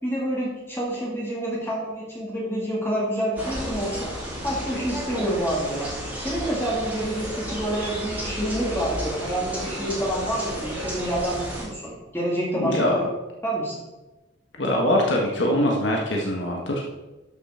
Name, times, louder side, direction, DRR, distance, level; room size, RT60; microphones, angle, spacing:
voice 1, 0.0-4.1 4.4-5.9 6.2-13.0 13.4-13.7, right 1 dB, 10° left, -5 dB, 2.3 m, -28 dB
sound 1, 3.4-11.7, equal, 10° right, 2.5 m, -32 dB
voice 2, 12.6-13.1 14.6-16.8, left 1 dB, 60° left, -1 dB, 1.5 m, -23 dB
13.0 x 5.9 x 4.3 m, 1.1 s
head